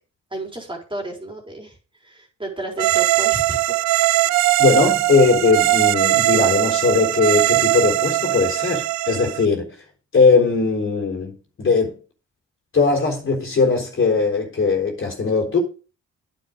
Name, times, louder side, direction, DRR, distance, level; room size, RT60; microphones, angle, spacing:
voice 1, 0.3-1.8 2.0-3.8, right 2 dB, 15° right, 4.1 m, -32 dB
sound 1, 2.8-9.5, right 16 dB, 65° right, 0.5 m, -20 dB
voice 2, 4.6-9.7 10.1-12.0 12.7-15.6, left 4 dB, 40° left, 3.6 m, -19 dB
9.5 x 7.1 x 5.1 m
cardioid pair, 90°, 30 cm